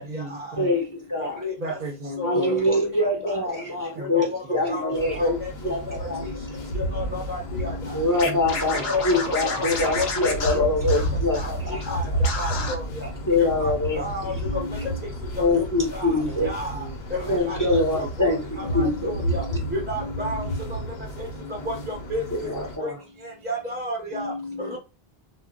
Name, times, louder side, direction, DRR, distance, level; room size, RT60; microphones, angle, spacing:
voice 1, 0.0-0.8 1.6-2.7 3.9-5.3 8.2-9.6 10.6-10.7 16.3-17.4 18.6-18.8 19.4-19.6 24.6-24.8, right 3 dB, 60° right, 0.7 m, -39 dB
voice 2, 0.6-1.4 2.2-5.4 5.6-6.3 7.9-12.2 13.3-14.0 15.4-16.5 17.3-19.1 22.4-23.0, left 2 dB, 20° left, 0.7 m, -24 dB
voice 3, 2.1-2.8 3.3-3.4 4.0-4.4 4.7-5.5 6.2-6.3 6.7-8.0 8.9-9.2 9.4-9.7 9.9-10.6 11.3-11.5 11.9-12.8 13.6-14.9 15.5-15.6 15.9-16.1 16.4-16.7 17.1-17.2 17.5-17.6 18.2-18.3 18.6-20.8 21.5-22.2 22.8-22.9 23.4-24.8, left 1 dB, 15° right, 0.5 m, -31 dB
sound 1, 4.9-22.8, right 1 dB, 80° left, 0.9 m, -31 dB
Scratching (performance technique), 8.2-11.5 11.8-11.9 12.2-12.7, left 3 dB, 55° left, 0.7 m, -30 dB
2.3 x 2.1 x 3.7 m
omnidirectional pair, 1.0 m